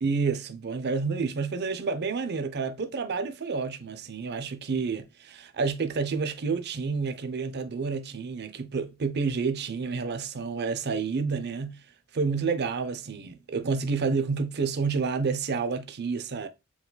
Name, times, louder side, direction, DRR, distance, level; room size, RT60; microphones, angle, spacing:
voice 1, 0.0-11.8 12.1-16.5, right 4 dB, 50° right, 0.6 m, -29 dB
4.6 x 3.9 x 2.3 m
head